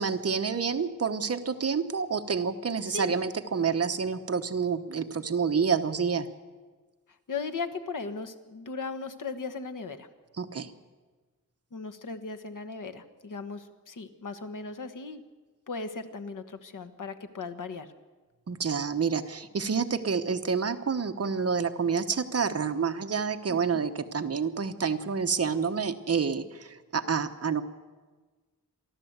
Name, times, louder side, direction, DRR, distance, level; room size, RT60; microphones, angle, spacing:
voice 1, 0.0-6.3 10.4-10.7 18.5-27.6, right 6 dB, 45° right, 8 dB, 1.0 m, -28 dB
voice 2, 7.3-10.1 11.7-15.2 15.7-17.9 23.5-23.8, left 4 dB, 65° left, 9 dB, 1.4 m, -37 dB
28.5 x 12.0 x 8.0 m, 1.3 s
wide cardioid pair, 165°, 33 cm